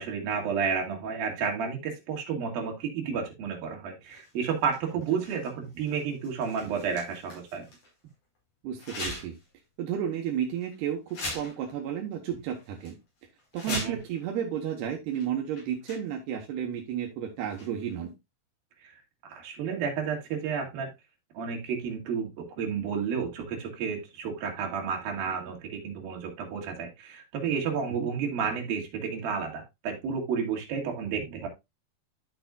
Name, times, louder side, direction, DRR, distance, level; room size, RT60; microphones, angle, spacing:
voice 1, 0.0-7.7 13.7-14.0 18.8-20.9 21.3-31.5, right 6 dB, 65° right, 1 dB, 3.9 m, -31 dB
sound 1, 4.0-7.9 8.8-9.5 9.9-10.0 10.6-10.7 11.1-11.9 12.1-12.2 12.5-12.9 13.4-14.2 15.1-15.2 15.5-16.3 17.4-17.9, left 2 dB, 50° left, 6.1 m, -41 dB
voice 2, 8.6-9.4 9.8-13.0 13.5-18.1 28.0-28.1, right 9 dB, 85° right, 2 dB, 3.2 m, -32 dB
11.5 x 6.8 x 2.4 m, 0.21 s
omnidirectional pair, 4.6 m